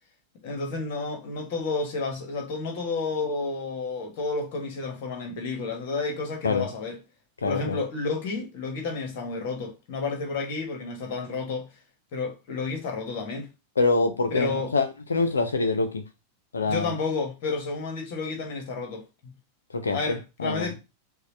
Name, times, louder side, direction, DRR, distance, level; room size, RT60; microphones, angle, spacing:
voice 1, 0.4-7.0 7.4-11.7 12.1-13.5 14.3-14.7 16.6-19.3 19.9-20.8, left 3 dB, 50° left, 1.5 m, -31 dB
voice 2, 7.4-7.8 13.8-16.0 16.5-16.9 19.7-20.7, left 3 dB, 75° left, 0.7 m, -25 dB
6.4 x 2.4 x 3.1 m
figure-of-eight pair, 90°, 0 cm